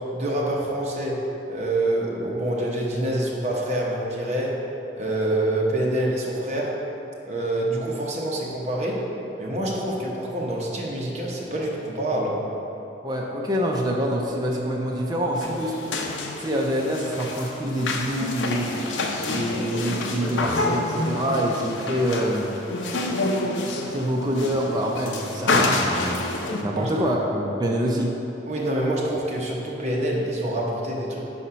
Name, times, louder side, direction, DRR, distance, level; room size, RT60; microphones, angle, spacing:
voice 1, 0.0-4.6 5.0-6.8 7.2-9.0 9.4-12.4 26.7-26.9 28.5-31.2, right 1 dB, 35° right, -3 dB, 0.9 m, -26 dB
voice 2, 13.0-15.7 16.4-18.7 19.3-22.5 23.8-26.3 26.6-28.1, equal, 20° right, -2 dB, 0.4 m, -26 dB
sound 1, 15.3-26.6, left 2 dB, 85° left, 0.6 m, -27 dB
5.0 x 4.2 x 5.6 m, 2.9 s
head